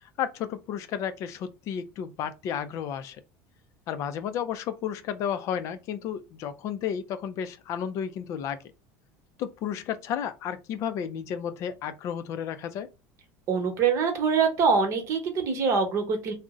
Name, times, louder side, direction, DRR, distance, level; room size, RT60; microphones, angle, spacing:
voice 1, 0.0-3.2 3.9-8.6 9.4-12.9, left 8 dB, 50° left, 0.4 m, -32 dB
voice 2, 13.5-16.3, right 5 dB, 45° right, 0.9 m, -24 dB
2.6 x 2.0 x 3.5 m
supercardioid pair, 135°, 7 cm